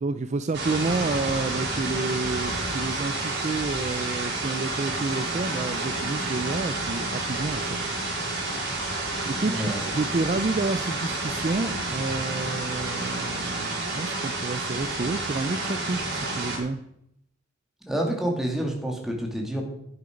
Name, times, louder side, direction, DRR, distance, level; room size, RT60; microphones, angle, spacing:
voice 1, 0.0-7.8 9.3-16.8, right 3 dB, 35° right, 12 dB, 0.4 m, -29 dB
sound 1, 0.5-16.6, right 2 dB, 60° right, 5.2 m, -30 dB
Engine, 0.8-11.5, left 1 dB, 45° left, 5.2 m, -46 dB
voice 2, 9.2-9.8 17.9-19.6, right 1 dB, ahead, 0 dB, 2.4 m, -28 dB
11.0 x 9.8 x 5.2 m, 0.76 s
head